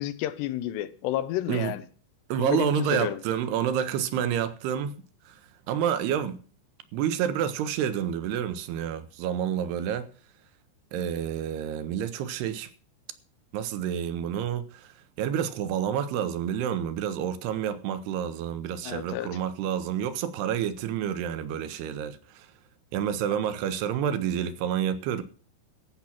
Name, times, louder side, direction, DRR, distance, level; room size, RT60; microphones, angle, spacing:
voice 1, 0.0-1.8 2.4-3.2 18.8-19.4, left 13 dB, 80° left, 2.9 m, -31 dB
voice 2, 2.3-5.0 5.3-5.4 5.7-6.4 6.9-10.1 10.9-12.7 13.5-14.9 15.2-22.5 22.9-25.2, right 9 dB, 80° right, 2.7 m, -29 dB
15.0 x 5.9 x 7.3 m
omnidirectional pair, 4.9 m